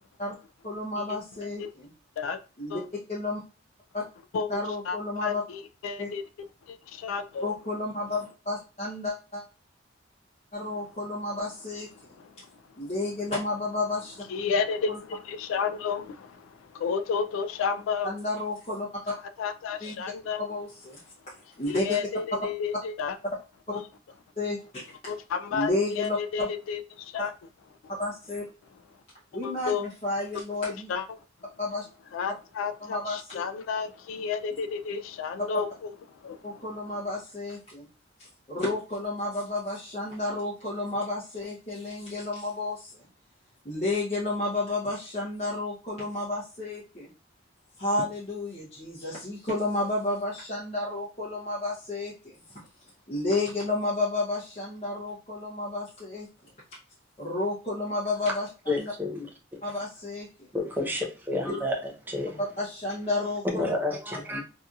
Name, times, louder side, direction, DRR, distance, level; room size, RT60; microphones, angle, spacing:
voice 1, 0.6-1.9 2.6-2.8 3.1-3.4 3.9-4.0 4.5-5.4 6.0-6.1 7.4-9.4 10.5-11.9 12.8-14.1 14.9-15.0 18.0-19.1 19.8-19.9 20.4-21.0 21.6-21.8 23.7-23.8 24.4-25.1 25.5-26.5 28.0-28.4 29.3-30.9 31.6-31.8 32.8-33.4 36.4-37.9 38.5-43.1 43.6-47.1 47.8-52.3 53.1-56.3 57.2-58.5 58.8-58.9 59.6-60.3 61.3-61.5 62.4-63.7, left 2 dB, 30° left, 0.7 m, -31 dB
voice 2, 4.8-6.2 6.7-7.6 12.2-12.5 14.3-18.2 19.4-20.5 21.7-23.2 23.7-23.8 25.1-27.3 29.4-29.8 30.9-31.2 32.1-35.9 36.2-36.8, left 6 dB, 80° left, 0.3 m, -32 dB
voice 3, 58.7-59.3 60.5-62.4 63.5-64.4, left 2 dB, 10° right, 0.5 m, -30 dB
2.7 x 2.6 x 2.3 m
head